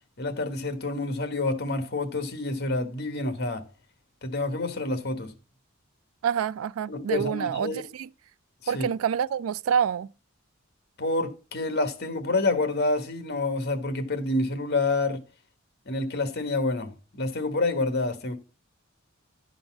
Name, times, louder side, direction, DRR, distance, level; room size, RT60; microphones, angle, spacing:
voice 1, 0.2-3.7 4.2-5.3 6.9-7.8 8.7-8.9 11.0-15.2 15.9-18.4, left 2 dB, 55° left, 1.3 m, -28 dB
voice 2, 6.2-8.1 8.7-10.1, right 8 dB, 85° right, 0.3 m, -27 dB
11.5 x 3.9 x 5.9 m
head